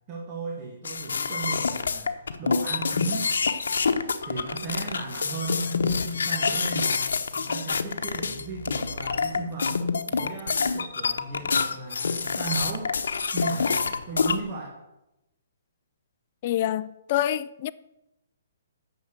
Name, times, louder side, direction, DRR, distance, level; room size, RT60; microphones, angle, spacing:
voice 1, 0.1-3.3 4.2-9.8 10.1-12.9 13.3-14.8, right 4 dB, 25° right, 1.7 m, -36 dB
sound 1, 0.8-14.4, left 5 dB, 85° left, 1.0 m, -27 dB
voice 2, 16.4-17.7, left 12 dB, 35° left, 0.4 m, -26 dB
9.4 x 7.2 x 8.1 m
hypercardioid pair, 165°, 0 cm